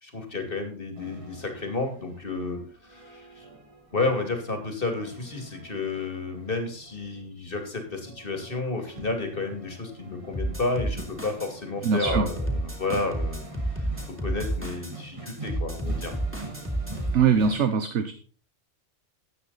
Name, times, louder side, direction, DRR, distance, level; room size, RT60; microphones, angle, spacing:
voice 1, 0.0-3.4 3.9-13.4 13.8-13.9 14.2-16.1, left 3 dB, 45° left, 6 dB, 2.9 m, -31 dB
sound 1, 1.0-17.6, right 2 dB, 25° right, 2.1 m, -44 dB
sound 2, 10.3-11.5 11.8-14.9 15.2-17.2, right 1 dB, 10° right, 3.2 m, -31 dB
voice 2, 11.8-12.3 17.1-18.1, right 6 dB, 65° right, 9 dB, 1.3 m, -22 dB
14.0 x 9.6 x 4.1 m, 0.39 s
omnidirectional pair, 1.3 m